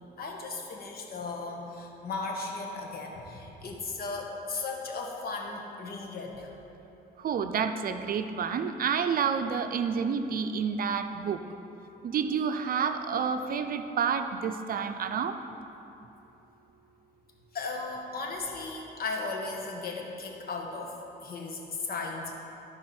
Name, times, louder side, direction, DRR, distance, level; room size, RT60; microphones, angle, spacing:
voice 1, 0.2-6.6 17.5-20.9 21.2-22.4, left 3 dB, 65° left, 0 dB, 1.3 m, -36 dB
voice 2, 7.2-11.4 12.0-15.4, right 6 dB, 60° right, 8 dB, 0.5 m, -29 dB
13.5 x 4.8 x 4.3 m, 3.0 s
cardioid pair, 85°, 17 cm